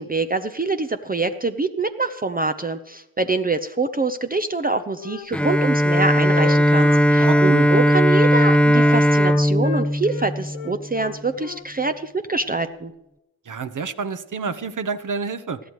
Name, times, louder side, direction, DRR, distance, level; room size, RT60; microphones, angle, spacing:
voice 1, 0.0-12.9, right 3 dB, 20° right, 8 dB, 0.8 m, -25 dB
Wind instrument woodwind instrument, 4.6-7.9 8.2-11.7, left 11 dB, 75° left, 0.8 m, -36 dB
Bowed string instrument, 5.3-11.0, equal, 5° left, 0.5 m, -17 dB
voice 2, 7.2-7.7 13.4-15.6, right 5 dB, 40° right, 11 dB, 1.1 m, -28 dB
20.0 x 13.5 x 3.2 m, 0.89 s
hypercardioid pair, 50°, 50 cm